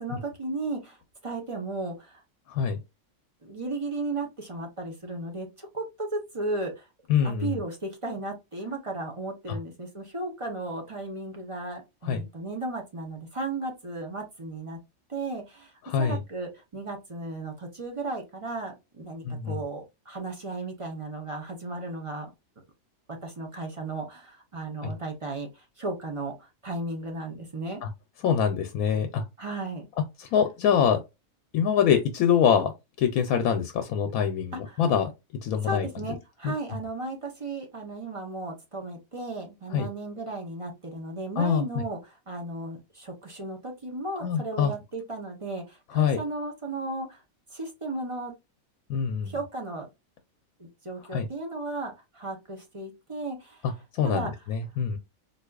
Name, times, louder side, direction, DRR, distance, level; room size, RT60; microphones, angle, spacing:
voice 1, 0.0-2.2 3.4-6.9 7.2-14.8 15.1-22.3 23.2-27.8 29.4-29.9 34.5-34.8 35.6-47.2 47.5-48.3 49.2-49.9 50.6-53.7 54.0-54.4, right 2 dB, 30° right, 0.7 m, -35 dB
voice 2, 2.5-2.8 7.1-7.5 9.5-9.6 12.1-12.2 15.9-16.2 19.2-19.6 24.8-24.9 27.8-27.9 28.2-29.2 30.3-31.0 31.5-32.7 33.0-35.1 35.4-35.9 36.4-36.5 39.7-39.9 41.4-41.8 44.2-44.7 45.9-46.2 48.9-49.3 51.1-51.3 54.0-55.0, left 7 dB, 90° left, 1.0 m, -24 dB
3.9 x 2.7 x 2.3 m
omnidirectional pair, 1.5 m